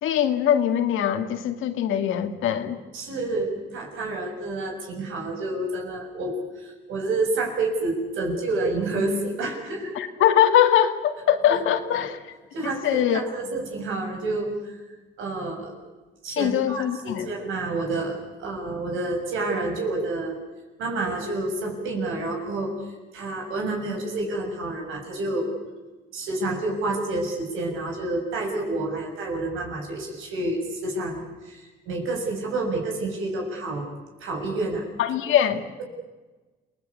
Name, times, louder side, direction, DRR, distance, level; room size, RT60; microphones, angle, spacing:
voice 1, 0.0-2.8 10.0-12.2 12.6-13.2 16.4-17.3 35.0-35.6, left 10 dB, 85° left, 7 dB, 2.2 m, -22 dB
voice 2, 2.9-10.0 11.5-11.6 11.9-12.1 12.5-14.8 15.2-15.7 16.2-20.4 20.8-22.8 23.1-25.5 26.1-33.9 34.2-34.8, right 2 dB, 90° right, 2 dB, 6.7 m, -29 dB
28.5 x 19.5 x 8.5 m, 1.2 s
cardioid pair, 90°, 20 cm